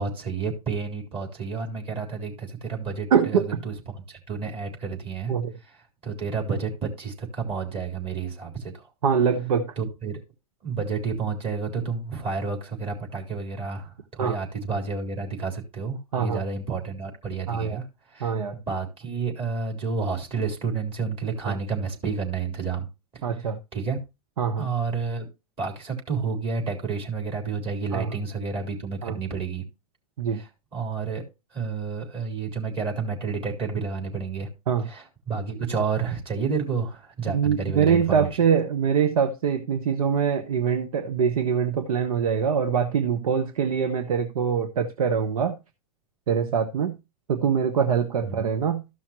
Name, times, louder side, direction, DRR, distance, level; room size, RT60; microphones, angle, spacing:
voice 1, 0.0-5.3 6.0-8.9 9.8-10.2 10.6-17.8 18.1-22.9 23.1-23.2 23.7-24.0 24.6-25.3 25.6-29.6 30.3-31.2 31.5-34.5 34.9-38.3 48.2-48.4, right 5 dB, 30° right, 3.7 m, -30 dB
voice 2, 3.1-3.6 5.3-5.5 9.0-9.7 14.2-14.4 16.1-16.4 17.5-17.8 18.2-18.6 21.4-21.6 23.2-23.6 24.4-24.7 27.9-28.2 29.0-29.2 30.2-30.4 34.7-34.9 37.3-45.6 46.3-47.0 47.3-48.8, right 7 dB, 75° right, 1.0 m, -24 dB
14.0 x 5.7 x 3.0 m
hypercardioid pair, 105°, 19 cm